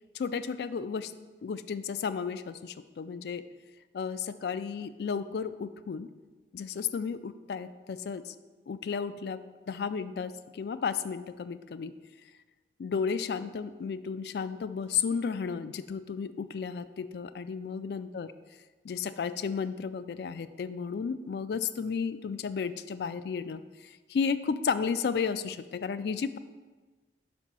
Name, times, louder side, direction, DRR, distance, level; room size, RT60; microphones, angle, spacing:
voice 1, 0.1-1.1 1.4-3.4 3.9-6.1 6.5-8.3 8.7-9.4 9.7-11.9 12.8-18.3 18.8-23.6 24.1-26.4, left 6 dB, 65° left, 13 dB, 0.3 m, -33 dB
5.3 x 4.3 x 5.9 m, 1.3 s
head